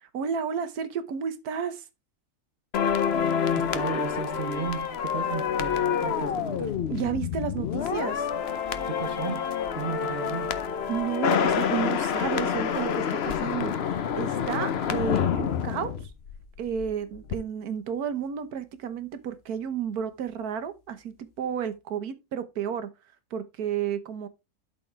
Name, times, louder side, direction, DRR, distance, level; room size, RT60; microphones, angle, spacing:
voice 1, 0.0-1.8 6.9-8.3 10.9-16.1 16.6-22.9 23.3-24.3, right 8 dB, 75° right, 1.5 m, -32 dB
sound 1, 2.7-16.9 17.1-17.4, left 7 dB, 55° left, 0.8 m, -27 dB
voice 2, 3.6-6.8 8.9-10.6, right 7 dB, 40° right, 1.0 m, -35 dB
12.0 x 4.2 x 3.3 m
omnidirectional pair, 1.6 m